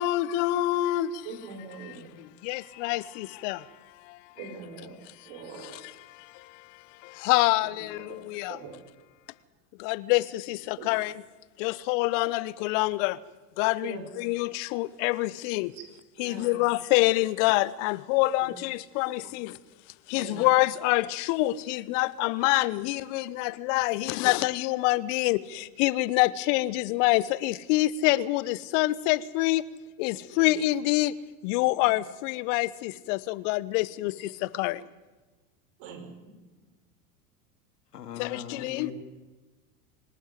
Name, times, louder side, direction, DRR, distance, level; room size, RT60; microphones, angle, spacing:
voice 1, 0.0-1.2 1.8-1.9 2.4-4.3 6.2-8.6 9.8-11.1 11.6-13.2 13.6-15.7 16.2-19.6 20.1-29.7 30.0-31.1 31.4-34.8 38.1-38.9, left 18 dB, 50° left, 1.0 m, -26 dB
voice 2, 1.2-2.1 4.3-5.0 5.2-5.8 7.8-8.2 8.5-8.8 10.8-10.9 13.8-14.2 15.7-15.8 16.2-16.6 18.4-18.5 19.2-19.3 20.1-20.5 30.3-30.4 34.5-34.6 35.8-36.7, right 5 dB, 55° right, 5.7 m, -43 dB
voice 3, 37.9-38.9, left 8 dB, 75° left, 3.3 m, -39 dB
25.5 x 12.0 x 9.5 m
hypercardioid pair, 90°, 47 cm